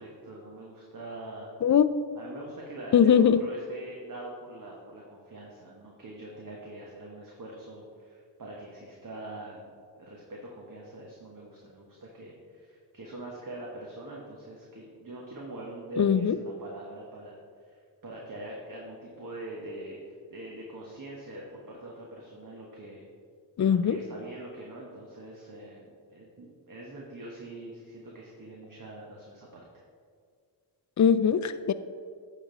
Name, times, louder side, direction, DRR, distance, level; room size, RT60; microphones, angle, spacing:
voice 1, 0.0-1.5 2.2-17.4 17.7-23.0 23.6-29.6, right 1 dB, 45° right, -2 dB, 1.4 m, -43 dB
voice 2, 2.9-3.4 16.0-16.4 23.6-24.0 31.0-31.7, left 8 dB, 45° left, 13 dB, 0.5 m, -21 dB
10.0 x 5.4 x 4.0 m, 2.1 s
cardioid pair, 50°, 43 cm